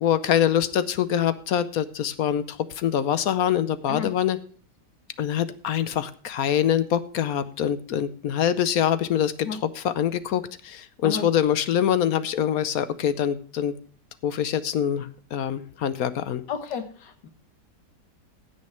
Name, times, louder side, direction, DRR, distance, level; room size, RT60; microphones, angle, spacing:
voice 1, 0.0-4.4 5.2-13.8 14.2-16.4, left 10 dB, 65° left, 14 dB, 1.1 m, -24 dB
voice 2, 16.5-17.3, left 7 dB, 85° left, 8 dB, 2.0 m, -32 dB
16.0 x 6.4 x 4.4 m, 0.43 s
omnidirectional pair, 1.9 m